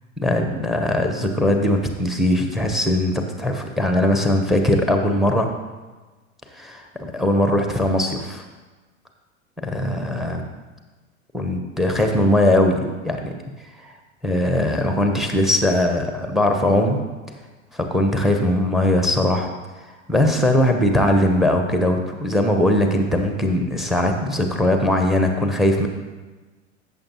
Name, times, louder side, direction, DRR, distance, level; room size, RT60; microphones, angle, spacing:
voice 1, 0.2-5.5 6.6-8.4 9.6-10.5 11.3-13.3 13.8-13.9 14.2-17.0 17.7-19.5 20.1-25.9, left 1 dB, ahead, 4 dB, 0.8 m, -20 dB
14.0 x 6.9 x 2.9 m, 1.3 s
figure-of-eight pair, 90°, 40 cm